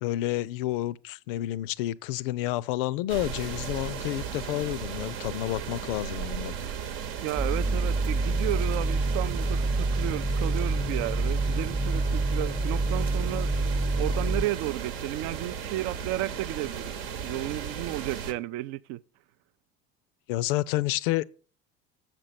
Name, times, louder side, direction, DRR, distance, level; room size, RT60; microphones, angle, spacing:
voice 1, 0.0-6.5 20.3-21.2, left 15 dB, 60° left, 0.5 m, -30 dB
sound 1, 3.1-18.3, right 7 dB, 65° right, 1.0 m, -36 dB
voice 2, 7.2-16.9 17.2-19.0, right 15 dB, 50° right, 0.4 m, -33 dB
sound 2, 7.4-14.5, right 2 dB, 15° right, 0.9 m, -27 dB
7.6 x 6.0 x 6.8 m
figure-of-eight pair, 65°, 31 cm